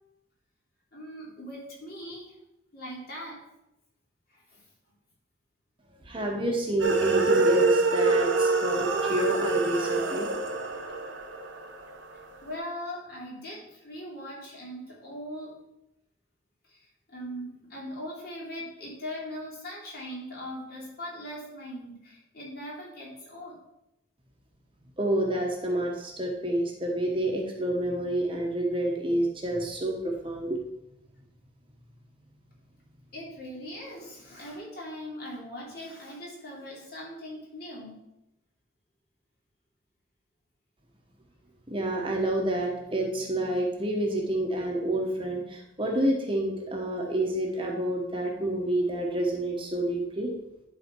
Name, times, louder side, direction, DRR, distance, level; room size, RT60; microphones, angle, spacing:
voice 1, 0.9-2.3 2.7-3.4 4.3-4.6 12.4-15.5 16.7-16.8 17.1-23.6 33.1-38.0, equal, 55° left, -4 dB, 2.8 m, -40 dB
voice 2, 6.0-10.3 25.0-30.6 41.7-50.3, right 1 dB, 25° right, 0 dB, 1.1 m, -28 dB
sound 1, 6.8-12.2, right 3 dB, 80° right, 1.0 m, -26 dB
11.0 x 4.3 x 4.5 m, 0.88 s
head